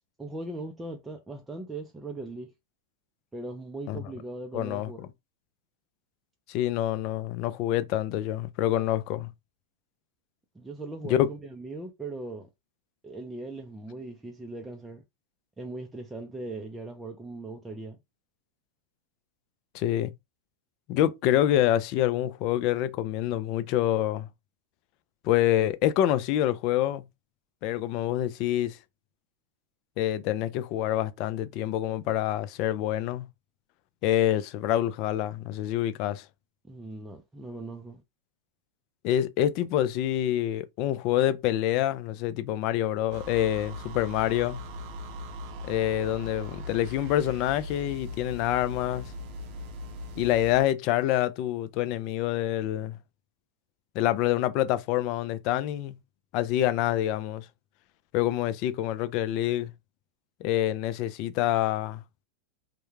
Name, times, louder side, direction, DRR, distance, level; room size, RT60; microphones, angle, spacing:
voice 1, 0.2-2.5 3.3-5.0 10.5-12.5 13.0-15.0 15.6-18.0 36.7-38.0, right 2 dB, 10° right, 0.5 m, -39 dB
voice 2, 4.5-4.9 6.5-9.3 11.1-11.3 19.7-20.1 20.9-24.3 25.2-27.0 27.6-28.8 30.0-33.3 34.0-36.2 39.0-44.6 45.6-49.1 50.2-53.0 53.9-56.0 56.3-57.5 58.1-59.7 60.4-62.0, left 12 dB, 50° left, 0.3 m, -26 dB
sound 1, 43.1-50.7, left 1 dB, 50° right, 0.6 m, -39 dB
2.3 x 2.1 x 3.1 m
hypercardioid pair, 120°, 0 cm